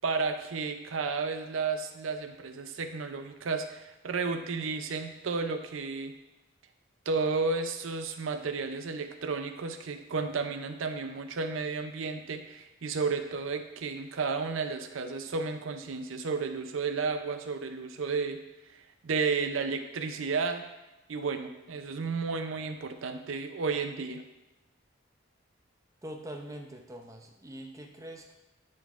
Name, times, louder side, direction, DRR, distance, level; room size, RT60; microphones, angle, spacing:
voice 1, 0.0-6.1 7.1-18.4 18.7-20.6 21.1-24.2, right 4 dB, 75° right, 7 dB, 0.5 m, -32 dB
voice 2, 26.0-28.3, right 1 dB, 15° right, 2 dB, 0.5 m, -43 dB
9.8 x 3.9 x 2.4 m, 1.0 s
head